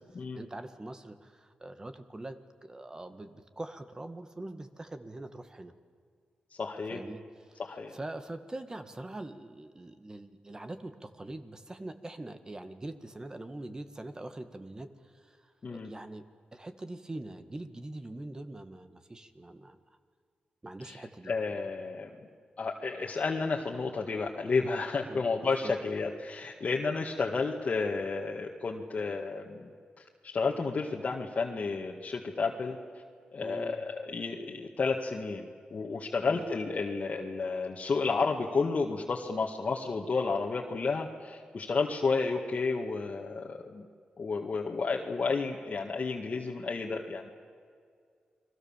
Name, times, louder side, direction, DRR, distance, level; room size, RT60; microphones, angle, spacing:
voice 1, 0.3-5.7 6.9-19.8 20.6-21.3 25.1-25.2 25.6-25.8 33.4-33.9 36.2-36.5, right 2 dB, 25° right, 9 dB, 1.9 m, -43 dB
voice 2, 6.6-7.0 7.6-7.9 15.6-15.9 20.9-21.0 21.3-22.1 22.6-29.7 30.2-32.8 33.3-35.4 35.7-43.8 44.2-47.3, left 4 dB, 50° left, -1 dB, 2.0 m, -31 dB
29.5 x 22.5 x 7.4 m, 2.1 s
cardioid pair, 85°, 3 cm